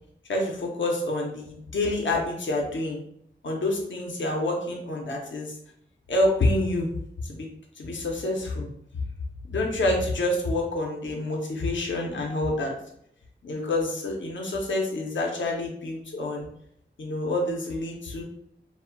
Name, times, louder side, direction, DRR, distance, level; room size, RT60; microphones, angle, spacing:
voice 1, 0.3-3.0 3.4-5.6 6.1-6.9 7.2-7.5 7.8-8.7 9.5-12.7 13.4-16.5 17.0-18.2, left 2 dB, 75° left, -1 dB, 0.6 m, -27 dB
2.2 x 2.1 x 3.7 m, 0.70 s
cardioid pair, 50°, 20 cm